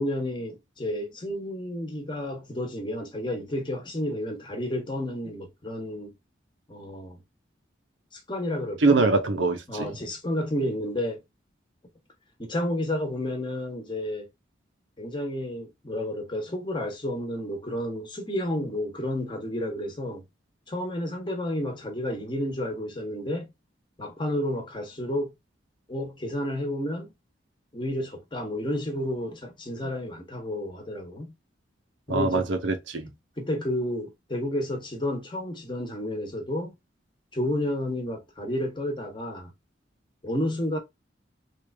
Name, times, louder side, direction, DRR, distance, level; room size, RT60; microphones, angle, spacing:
voice 1, 0.0-6.1 6.7-7.2 8.1-9.0 9.7-11.2 12.4-14.3 15.0-20.2 20.7-23.5 24.0-25.3 25.9-27.1 27.7-31.3 32.1-32.5 33.4-36.7 37.3-39.5 40.2-40.8, left 1 dB, 25° left, 1.0 m, -31 dB
voice 2, 8.8-9.9 32.1-33.1, right 3 dB, 80° right, 0.8 m, -23 dB
3.2 x 2.5 x 3.3 m
head